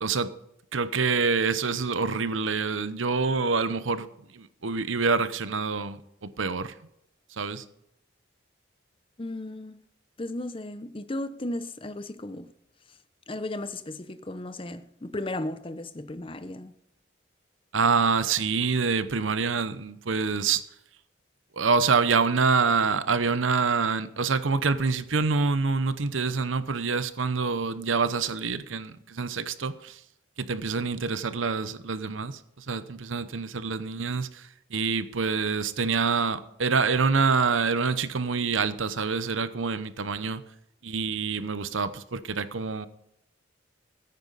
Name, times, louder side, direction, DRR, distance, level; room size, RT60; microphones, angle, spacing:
voice 1, 0.0-0.3 0.7-4.1 4.3-6.7 7.4-7.6 17.7-20.6 21.6-30.0 30.4-34.4 34.7-40.4 40.8-42.9, right 4 dB, 85° right, 0.9 m, -26 dB
voice 2, 9.2-9.8 10.2-12.5 13.3-16.7, left 1 dB, 25° left, 0.7 m, -35 dB
14.5 x 9.4 x 4.1 m
head